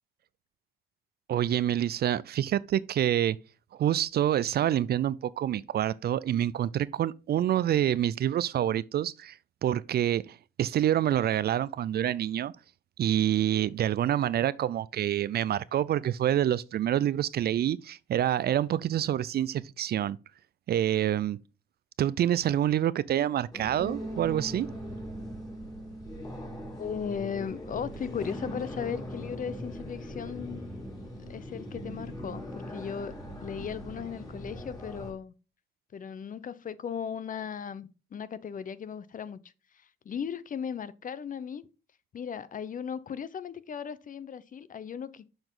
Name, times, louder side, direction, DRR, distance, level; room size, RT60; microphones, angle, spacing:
voice 1, 1.3-3.4 3.8-9.4 9.6-12.5 13.0-20.2 20.7-21.4 22.0-24.7, right 11 dB, 55° right, 0.4 m, -27 dB
sound 1, 23.5-35.1, equal, 20° left, 2.9 m, -41 dB
sound 2, 23.8-30.0, right 1 dB, 35° right, 1.0 m, -44 dB
voice 2, 26.8-30.7 31.2-33.1 33.4-35.3 35.9-41.7 42.1-45.2, left 7 dB, 45° left, 0.6 m, -37 dB
6.9 x 6.0 x 3.8 m
cardioid pair, 90°, 20 cm